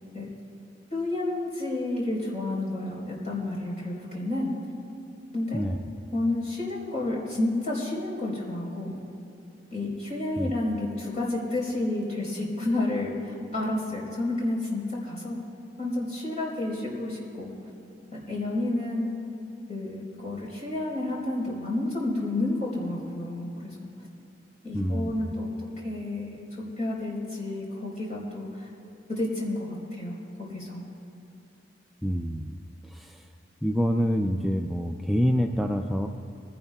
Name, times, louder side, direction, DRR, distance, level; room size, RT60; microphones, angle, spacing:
voice 1, 0.9-4.5 5.3-5.6 6.1-9.0 9.7-15.4 15.8-17.5 18.1-19.1 19.7-23.9 24.6-28.7 29.1-30.8, left 2 dB, 35° left, -4 dB, 4.1 m, -30 dB
voice 2, 24.7-25.1 32.0-32.5 32.8-33.3 33.6-36.1, equal, ahead, 1 dB, 0.3 m, -26 dB
24.0 x 16.5 x 2.3 m, 2.6 s
head